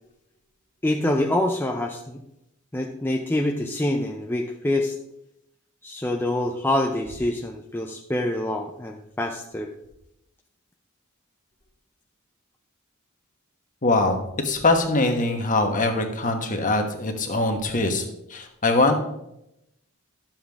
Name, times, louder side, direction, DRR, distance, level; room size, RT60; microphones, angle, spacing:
voice 1, 0.8-2.2 2.7-4.9 5.8-9.7, left 1 dB, 10° left, 1 dB, 0.5 m, -26 dB
voice 2, 13.8-14.2 14.4-18.0 18.3-18.9, left 2 dB, 40° left, 4 dB, 1.3 m, -22 dB
12.0 x 7.4 x 3.6 m, 0.83 s
head